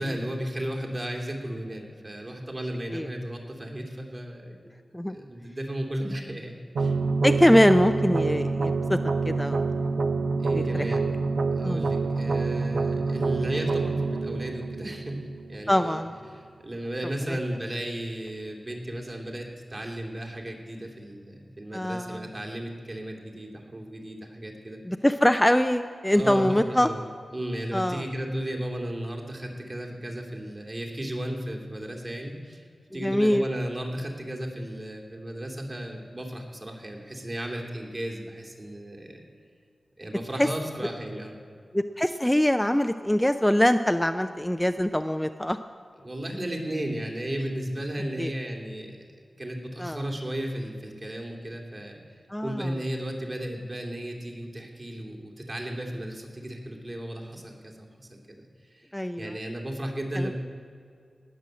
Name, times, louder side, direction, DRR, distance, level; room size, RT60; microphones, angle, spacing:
voice 1, 0.0-4.7 5.1-6.9 10.4-11.1 11.5-16.0 16.3-24.8 26.1-27.1 27.3-32.7 32.9-39.2 40.0-41.4 46.0-49.1 49.4-52.0 52.4-58.4 58.7-58.9 59.2-60.3, right 1 dB, 40° right, 0 dB, 2.7 m, -34 dB
sound 1, 6.7-15.7, right 3 dB, 80° right, 0.8 m, -27 dB
voice 2, 7.2-9.0 9.2-9.7 10.5-10.9 11.6-11.9 15.7-16.1 17.3-17.4 21.7-22.3 24.9-26.9 27.7-28.0 33.0-33.4 40.4-40.5 41.7-45.6 48.2-48.3 49.8-50.0 52.3-52.7 58.9-59.3 60.2-60.3, left 1 dB, 10° left, 8 dB, 0.5 m, -23 dB
19.0 x 6.4 x 7.6 m, 2.3 s
cardioid pair, 55°, 0 cm